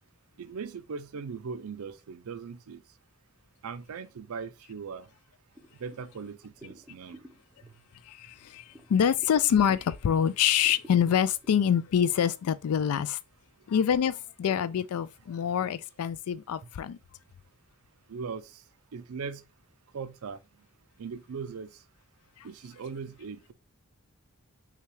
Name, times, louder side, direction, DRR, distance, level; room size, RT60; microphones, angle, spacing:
voice 1, 0.4-2.8 3.6-5.1 5.8-7.2 18.1-18.5 18.9-19.4 19.9-20.4 21.0-21.7 22.4-23.5, right 5 dB, 75° right, 0.4 m, -39 dB
sound 1, 5.5-10.2 10.5-12.3, equal, 10° right, 0.6 m, -56 dB
voice 2, 8.1-13.2 13.7-17.0 22.4-22.5, left 8 dB, 75° left, 0.3 m, -26 dB
5.6 x 2.3 x 3.1 m
head